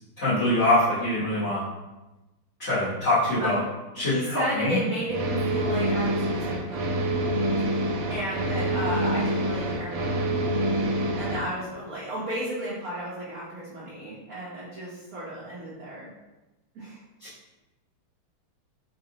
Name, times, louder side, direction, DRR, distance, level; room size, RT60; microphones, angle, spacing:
voice 1, 0.2-1.6 2.6-3.6 4.0-4.8 17.2-17.3, left 1 dB, 40° left, -12 dB, 1.2 m, -24 dB
voice 2, 4.0-6.9 8.1-10.4 11.2-16.1 16.7-17.0, right 1 dB, 55° right, -8 dB, 1.0 m, -33 dB
sound 1, 5.1-11.4, right 1 dB, 75° right, 1.2 m, -26 dB
3.7 x 2.4 x 3.9 m, 1.1 s
omnidirectional pair, 2.4 m